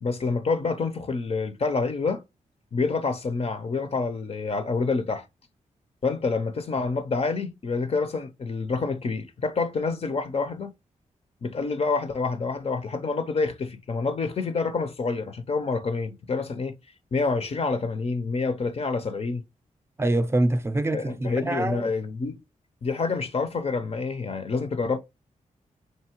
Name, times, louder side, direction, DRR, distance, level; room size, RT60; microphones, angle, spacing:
voice 1, 0.0-2.2 2.7-5.3 6.0-10.7 11.4-16.8 17.1-19.4 20.9-22.4 22.8-25.0, left 4 dB, 50° left, 0.6 m, -27 dB
voice 2, 20.0-21.9, right 1 dB, 20° right, 0.5 m, -25 dB
4.7 x 2.7 x 2.9 m
cardioid pair, 70°, 14 cm